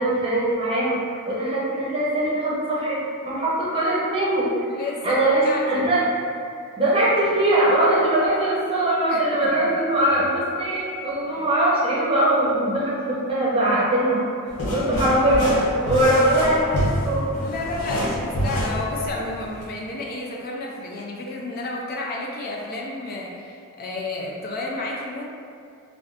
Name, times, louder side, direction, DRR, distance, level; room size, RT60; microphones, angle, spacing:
voice 1, 0.0-3.0 3.2-5.4 5.7-6.0 6.8-14.2 14.7-15.5 15.8-17.2, right 1 dB, 25° right, -7 dB, 0.7 m, -21 dB
voice 2, 4.7-5.9 9.1-9.7 11.3-11.5 17.4-25.3, left 2 dB, 40° left, -2 dB, 0.3 m, -31 dB
sound 1, 14.5-19.6, equal, 80° left, 0.6 m, -27 dB
3.4 x 2.5 x 2.4 m, 2.4 s
head